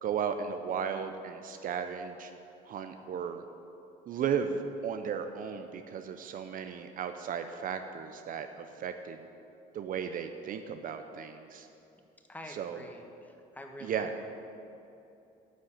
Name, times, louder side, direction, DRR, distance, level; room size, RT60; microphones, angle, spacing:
voice 1, 0.0-2.3 2.7-3.4 4.1-9.3 9.7-11.7 12.5-12.8 13.8-14.1, right 7 dB, 55° right, 7 dB, 0.6 m, -35 dB
voice 2, 12.3-14.3, left 1 dB, 10° left, 3 dB, 1.3 m, -47 dB
9.6 x 6.2 x 8.7 m, 2.7 s
cardioid pair, 110°, 17 cm